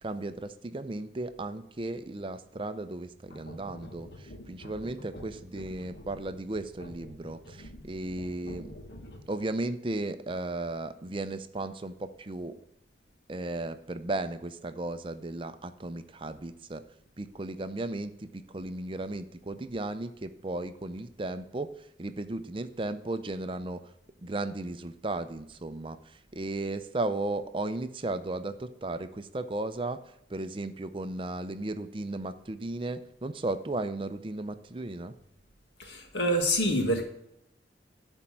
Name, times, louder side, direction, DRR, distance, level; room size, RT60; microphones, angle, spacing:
voice 1, 0.0-8.7 9.3-12.5 13.3-16.8 17.2-23.9 24.2-30.0 30.3-35.1, right 2 dB, 30° right, 11 dB, 0.5 m, -35 dB
sound 1, 3.3-9.5, left 1 dB, 70° left, 1.3 m, -47 dB
voice 2, 35.8-37.0, equal, 90° left, 4 dB, 1.9 m, -26 dB
11.0 x 4.5 x 7.4 m, 0.79 s
head